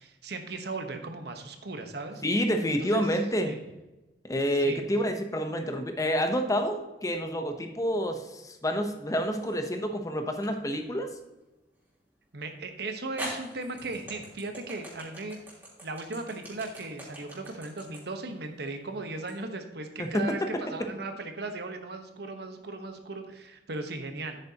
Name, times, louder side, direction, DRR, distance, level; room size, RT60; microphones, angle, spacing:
voice 1, 0.0-2.2 2.9-3.1 3.4-3.6 4.6-4.8 12.3-15.4 15.8-24.4, right 2 dB, 65° right, 6 dB, 1.2 m, -37 dB
voice 2, 2.2-3.5 4.2-11.1 20.0-20.3, equal, 20° left, 6 dB, 0.9 m, -28 dB
sound 1, 9.1-9.7 10.4-10.5 12.4-12.5 13.2-19.4, right 1 dB, 10° right, 3.5 m, -42 dB
10.5 x 8.8 x 2.9 m, 1.0 s
head